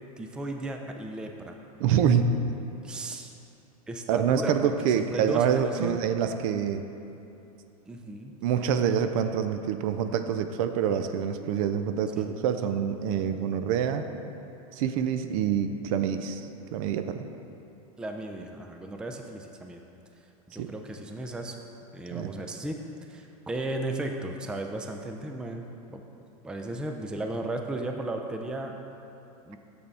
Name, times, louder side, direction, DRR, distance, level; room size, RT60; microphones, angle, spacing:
voice 1, 0.2-1.6 2.8-3.3 3.9-4.7 5.0-6.0 7.9-8.4 12.1-12.3 18.0-19.8 20.5-21.6 21.9-22.8 23.1-26.0 26.4-28.7 29.5-29.6, right 2 dB, 5° right, 4 dB, 0.3 m, -35 dB
voice 2, 1.8-2.3 4.1-6.8 8.4-14.0 14.7-16.4 16.7-17.2 20.6-20.7 22.1-22.3, right 8 dB, 60° right, 9 dB, 0.5 m, -26 dB
6.8 x 6.6 x 3.4 m, 2.8 s
supercardioid pair, 120°, 20 cm